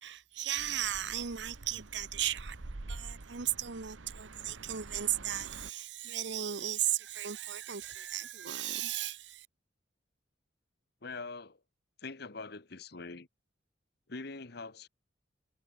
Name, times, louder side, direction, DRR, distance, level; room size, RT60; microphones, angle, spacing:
voice 1, 0.0-2.6 2.8-9.5, right 11 dB, 65° right, 0.9 m, -36 dB
sound 1, 0.6-5.7, right 2 dB, 90° right, 1.1 m, -47 dB
voice 2, 11.0-11.6 12.0-13.3 14.1-14.9, left 3 dB, 55° left, 1.3 m, -43 dB
head